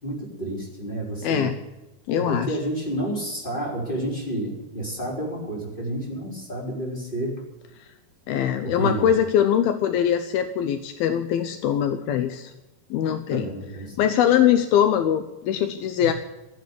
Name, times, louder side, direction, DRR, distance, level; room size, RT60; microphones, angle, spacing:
voice 1, 0.0-1.5 2.1-7.4 8.6-9.1 13.3-14.1, right 1 dB, 15° left, -2 dB, 4.6 m, -30 dB
voice 2, 1.2-1.6 2.1-2.6 8.3-12.5 12.9-13.5 14.0-16.1, left 10 dB, 80° left, 9 dB, 2.7 m, -22 dB
15.5 x 9.5 x 8.4 m, 1.0 s
omnidirectional pair, 4.3 m